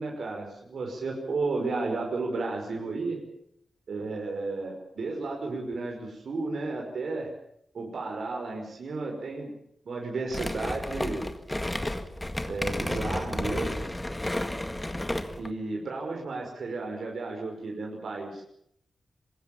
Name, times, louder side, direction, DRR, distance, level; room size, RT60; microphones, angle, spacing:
voice 1, 0.0-3.2 3.9-7.3 7.7-9.5 9.8-11.2 12.5-13.8 15.4-18.4, right 3 dB, 70° right, 0 dB, 5.6 m, -33 dB
sound 1, 10.3-15.5, left 1 dB, 10° left, 1.9 m, -32 dB
25.0 x 21.0 x 7.2 m, 0.73 s
wide cardioid pair, 125°, 0 cm